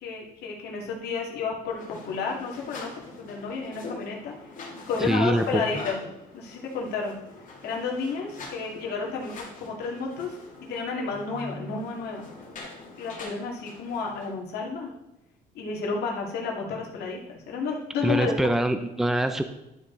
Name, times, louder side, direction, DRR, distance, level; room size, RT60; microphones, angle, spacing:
voice 1, 0.0-4.3 4.8-6.0 6.3-7.1 7.6-12.4 13.0-14.9 15.5-18.3, left 4 dB, 75° left, -2 dB, 2.3 m, -31 dB
sound 1, 1.7-14.3, left 2 dB, 50° left, 2.6 m, -43 dB
voice 2, 5.0-5.6 18.0-19.4, right 1 dB, ahead, 8 dB, 0.6 m, -24 dB
11.5 x 5.3 x 3.9 m, 0.93 s
cardioid pair, 110°, 17 cm